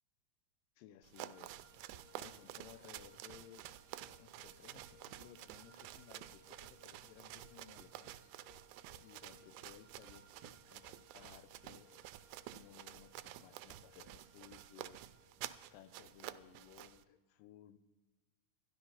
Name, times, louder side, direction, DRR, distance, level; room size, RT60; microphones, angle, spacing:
voice 1, 0.8-1.6 2.1-3.7 4.2-8.2 9.0-12.0 12.5-15.1 15.7-17.8, left 11 dB, 80° left, 12 dB, 2.2 m, -59 dB
sound 1, 1.0-17.0, right 14 dB, 90° right, 2.4 m, -51 dB
sound 2, 1.1-17.0, left 2 dB, 25° right, 1.1 m, -67 dB
12.5 x 11.0 x 5.6 m, 1.2 s
omnidirectional pair, 4.2 m